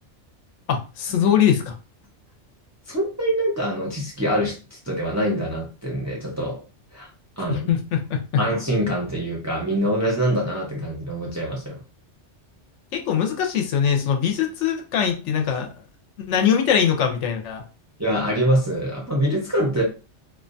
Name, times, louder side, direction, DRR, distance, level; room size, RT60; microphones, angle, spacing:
voice 1, 0.7-1.7 7.5-8.2 12.9-15.7 16.2-17.6, left 8 dB, 80° left, 0.9 m, -22 dB
voice 2, 2.9-6.6 6.9-7.1 7.4-7.7 8.4-11.8 18.0-19.8, right 1 dB, 20° right, 0.5 m, -24 dB
2.5 x 2.2 x 2.5 m
omnidirectional pair, 1.2 m